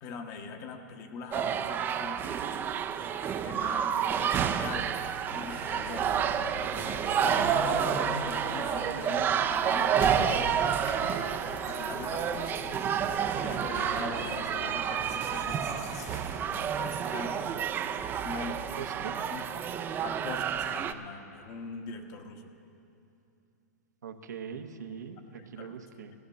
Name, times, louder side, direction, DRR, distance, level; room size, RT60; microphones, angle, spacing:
voice 1, 0.0-2.7 3.2-6.3 6.7-11.3 11.6-12.5 13.2-16.0 16.8-17.4 18.2-19.4 20.0-22.5 25.4-25.7, left 4 dB, 35° left, 5 dB, 1.1 m, -42 dB
sound 1, 1.3-20.9, right 8 dB, 20° right, 0.5 m, -30 dB
sound 2, 5.5-17.0, left 3 dB, 70° left, 2.0 m, -45 dB
voice 2, 18.8-19.2 24.0-26.1, right 7 dB, 85° right, 6 dB, 1.0 m, -42 dB
14.0 x 6.7 x 9.4 m, 2.7 s
hypercardioid pair, 130°, 9 cm